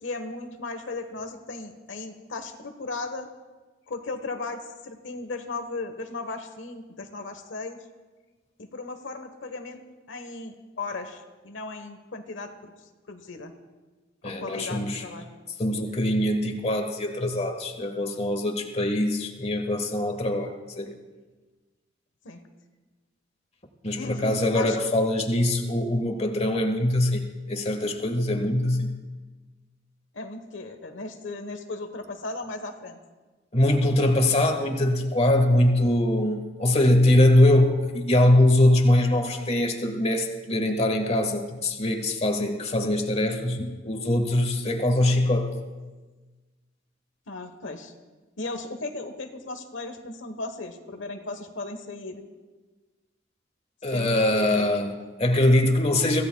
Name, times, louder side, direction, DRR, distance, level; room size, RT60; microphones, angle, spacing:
voice 1, 0.0-3.3 3.9-7.8 8.6-9.8 10.1-12.7 13.1-13.5 14.2-15.2 22.2-22.4 23.9-24.8 30.1-33.0 47.3-47.9 48.4-52.3 53.9-54.8, left 3 dB, 85° left, 6 dB, 1.1 m, -36 dB
voice 2, 14.2-15.0 15.6-20.9 23.8-28.9 33.5-45.5 53.8-56.2, left 1 dB, 35° left, 3 dB, 1.4 m, -22 dB
25.0 x 16.0 x 2.3 m, 1.3 s
head